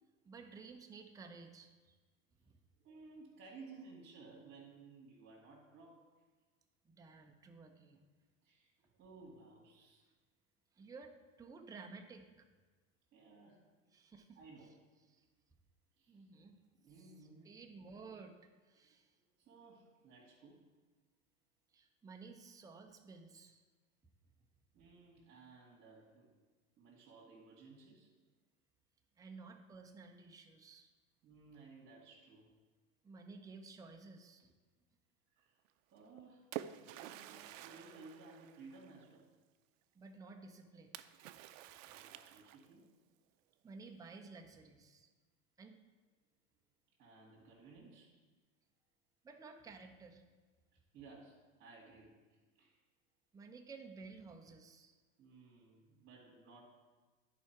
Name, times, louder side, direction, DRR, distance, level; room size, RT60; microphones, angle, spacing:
voice 1, 0.2-2.0 2.5-2.6 6.8-8.1 10.8-12.5 13.9-14.4 15.1-15.2 16.1-16.5 17.0-17.1 17.4-18.4 18.6-19.1 21.7-23.6 29.2-30.9 33.0-34.5 39.9-40.9 43.6-45.1 45.6-45.8 49.2-50.2 53.3-55.0, right 4 dB, 10° right, 3 dB, 0.6 m, -54 dB
voice 2, 2.8-6.0 8.4-10.1 13.1-13.6 14.4-14.8 16.0-16.3 16.8-17.6 18.7-19.0 19.4-20.6 24.7-26.3 26.8-28.1 31.2-32.5 35.3-35.6 35.9-36.5 36.8-39.3 41.8-42.9 47.0-48.1 50.7-52.8 55.2-56.6, right 3 dB, 35° right, -5 dB, 2.2 m, -58 dB
Splash splatter, 36.0-39.1 40.9-42.9, right 13 dB, 70° right, 0.5 m, -49 dB
10.0 x 4.8 x 4.6 m, 1.3 s
hypercardioid pair, 115°, 40 cm